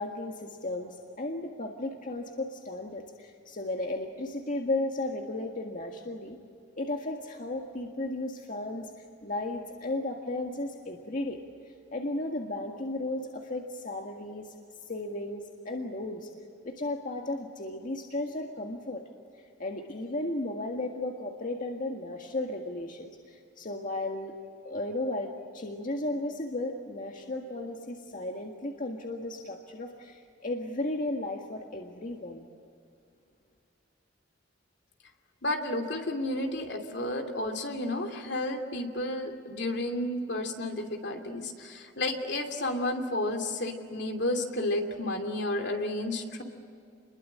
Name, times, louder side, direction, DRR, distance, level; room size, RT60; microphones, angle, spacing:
voice 1, 0.0-6.4 6.8-8.9 9.2-11.4 11.9-14.5 14.8-16.3 16.6-19.0 19.6-24.4 24.6-32.5, left 2 dB, 45° left, 2 dB, 1.8 m, -34 dB
voice 2, 35.4-46.4, left 1 dB, 65° left, 4 dB, 2.9 m, -32 dB
28.5 x 22.0 x 8.7 m, 2.4 s
head